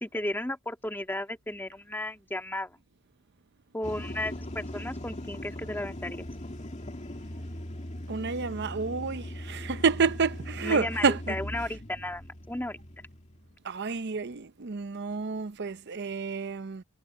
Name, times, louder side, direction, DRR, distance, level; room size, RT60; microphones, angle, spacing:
voice 1, 0.0-2.8 3.7-6.2 10.6-12.8, left 1 dB, 10° left, 1.8 m, -34 dB
sound 1, 3.8-13.6, left 1 dB, 35° left, 2.4 m, -40 dB
voice 2, 8.1-11.4 13.6-16.8, right 5 dB, 50° right, 0.7 m, -29 dB
head